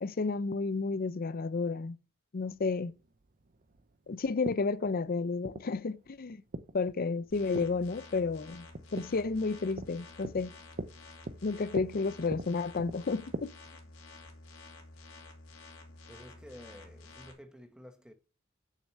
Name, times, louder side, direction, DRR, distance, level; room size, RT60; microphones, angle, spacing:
voice 1, 0.0-2.0 2.3-2.9 4.1-6.4 6.7-8.7 8.9-10.5 11.4-13.5, left 4 dB, 45° left, 0.5 m, -31 dB
sound 1, 2.4-13.4, right 2 dB, 40° right, 0.6 m, -44 dB
sound 2, 7.3-17.3, left 3 dB, 80° left, 2.6 m, -51 dB
voice 2, 16.1-18.1, equal, 5° right, 1.1 m, -51 dB
6.6 x 6.4 x 7.5 m
head